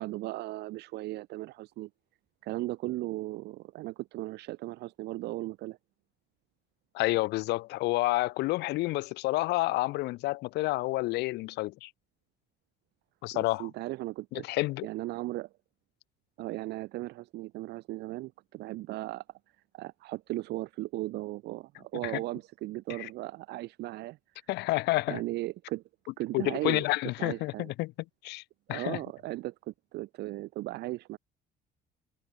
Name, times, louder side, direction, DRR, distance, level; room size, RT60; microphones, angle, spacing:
voice 1, 0.0-1.9 2.4-5.8 13.3-14.5 14.8-15.5 16.4-19.2 19.7-24.5 25.1-25.8 26.2-27.7 28.7-31.2, right 18 dB, 80° right, 1.5 m, -37 dB
voice 2, 6.9-11.9 13.2-13.7 14.3-14.9 23.0-23.1 24.5-25.2 26.3-27.9 28.2-28.4 28.7-29.0, left 20 dB, 80° left, 0.6 m, -29 dB
cardioid pair, 110°, 17 cm